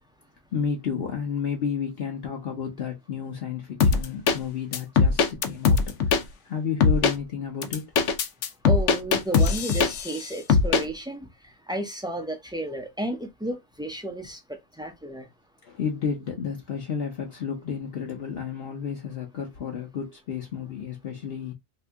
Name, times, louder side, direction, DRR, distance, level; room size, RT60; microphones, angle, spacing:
voice 1, 0.5-7.9 15.6-21.5, left 7 dB, 60° left, 0.9 m, -31 dB
sound 1, 3.8-4.4 4.7-6.2 6.8-7.1 7.6-10.2 10.5-10.8, left 5 dB, 85° left, 0.9 m, -20 dB
voice 2, 8.7-11.3 11.7-15.3, right 1 dB, 5° right, 0.3 m, -32 dB
2.7 x 2.6 x 3.4 m
omnidirectional pair, 1.2 m